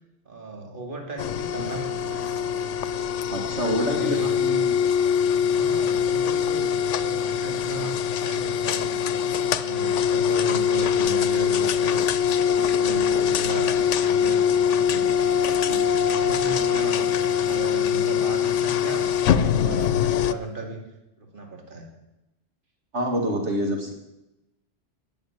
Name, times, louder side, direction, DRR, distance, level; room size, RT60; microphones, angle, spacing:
voice 1, 0.3-2.3 3.5-4.8 5.5-9.2 9.6-12.0 12.4-15.1 15.7-20.8 21.2-21.9, right 2 dB, 45° right, 2 dB, 2.5 m, -36 dB
sound 1, 1.2-20.3, left 8 dB, 85° left, 1.0 m, -23 dB
voice 2, 3.3-4.2 15.4-15.8 22.9-23.9, equal, 70° right, 2 dB, 2.4 m, -26 dB
19.0 x 7.1 x 9.2 m, 0.94 s
omnidirectional pair, 1.2 m